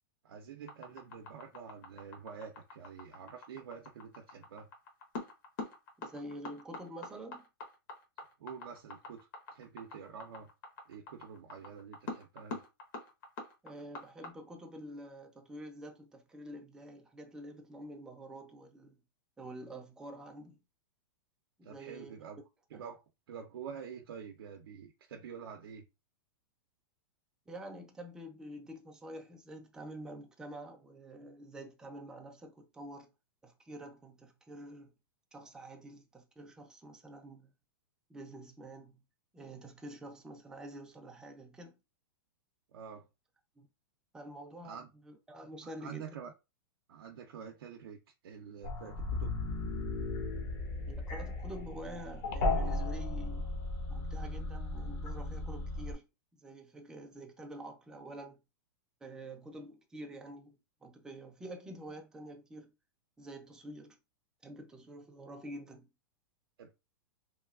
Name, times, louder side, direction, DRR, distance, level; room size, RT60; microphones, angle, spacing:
voice 1, 0.2-4.7 8.4-10.5 10.9-12.6 21.6-22.4 22.7-23.0 23.3-25.9 42.7-43.1 44.6-44.9 45.6-46.3 46.9-48.0 48.2-49.3 66.6-66.7, right 7 dB, 90° right, 0.5 m, -47 dB
sound 1, 0.7-14.3, left 3 dB, 50° left, 1.0 m, -44 dB
voice 2, 6.0-7.4 13.6-19.0 19.4-20.6 21.6-22.2 27.5-33.1 33.4-34.9 35.3-37.5 38.1-39.0 39.3-41.8 43.6-43.7 44.1-44.8 45.1-46.1 50.9-53.5 53.9-56.1 56.4-58.4 59.0-60.6 60.8-62.7 63.2-64.0 64.4-65.9, right 1 dB, 5° right, 0.4 m, -47 dB
sound 2, 48.6-55.9, left 2 dB, 35° left, 0.6 m, -36 dB
3.0 x 2.3 x 2.3 m
supercardioid pair, 150°, 12 cm